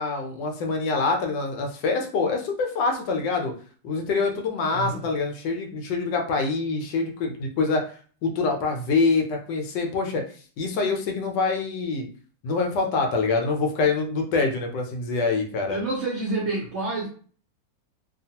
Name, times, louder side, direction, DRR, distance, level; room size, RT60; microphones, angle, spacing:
voice 1, 0.0-3.5 3.8-7.8 8.2-10.2 10.6-12.0 12.4-15.8, left 4 dB, 75° left, 2 dB, 1.2 m, -25 dB
voice 2, 4.7-5.1 15.7-17.1, right 2 dB, 60° right, -4 dB, 0.7 m, -28 dB
2.9 x 2.4 x 2.8 m, 0.42 s
omnidirectional pair, 2.0 m